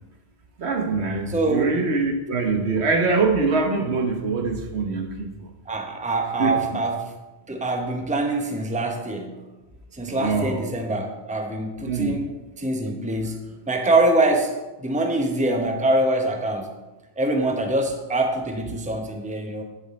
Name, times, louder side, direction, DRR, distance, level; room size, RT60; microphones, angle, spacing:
voice 1, 0.6-5.3 6.4-6.6 10.1-10.6 11.8-12.2, right 4 dB, 70° right, 4 dB, 1.3 m, -23 dB
voice 2, 1.3-1.7 5.7-7.1 7.5-9.4 10.0-12.3 12.6-16.7 17.2-19.6, right 2 dB, 5° right, 3 dB, 0.8 m, -24 dB
9.7 x 7.4 x 4.2 m, 1.1 s
omnidirectional pair, 1.1 m